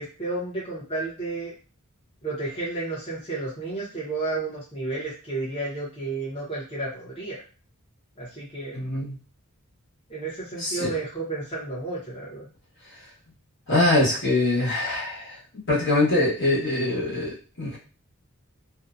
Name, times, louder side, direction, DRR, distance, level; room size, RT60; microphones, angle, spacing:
voice 1, 0.0-1.5 2.2-7.4 8.2-8.9 10.1-12.5, right 2 dB, 25° left, -8 dB, 0.9 m, -32 dB
voice 2, 8.7-9.2 10.6-10.9 13.7-15.4 15.7-17.8, left 2 dB, 55° left, -6 dB, 1.2 m, -23 dB
2.7 x 2.2 x 2.5 m, 0.36 s
head